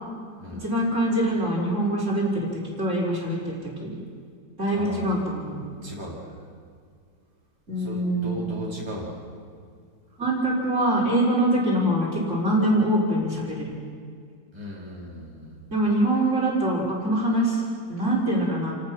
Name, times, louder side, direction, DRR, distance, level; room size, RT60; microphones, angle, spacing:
voice 1, 0.6-2.5 2.8-4.0 4.6-5.6 7.7-8.4 10.2-13.7 15.7-17.6 17.9-18.7, right 1 dB, 40° right, -4 dB, 4.9 m, -24 dB
voice 2, 4.7-5.2 5.8-6.3 7.8-9.2 14.5-15.6, equal, 15° right, -6 dB, 4.2 m, -37 dB
29.0 x 18.5 x 6.0 m, 2.1 s
omnidirectional pair, 1.9 m